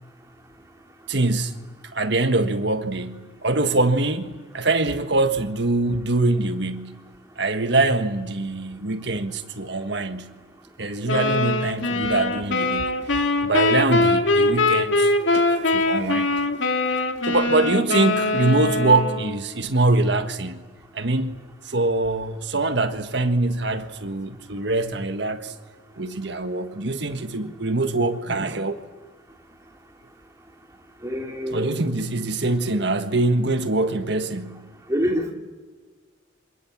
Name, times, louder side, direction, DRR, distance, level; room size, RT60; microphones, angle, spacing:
voice 1, 1.1-1.6 1.9-7.0 7.4-10.3 10.8-16.3 17.3-20.6 20.9-21.4 21.6-25.5 26.0-28.8 31.5-34.7, right 2 dB, 60° right, 1.6 m, -23 dB
sound 1, 11.1-19.4, left 2 dB, 80° left, 2.0 m, -22 dB
voice 2, 31.0-31.8 34.9-35.3, equal, 15° right, 2.9 m, -26 dB
27.5 x 26.5 x 7.5 m
head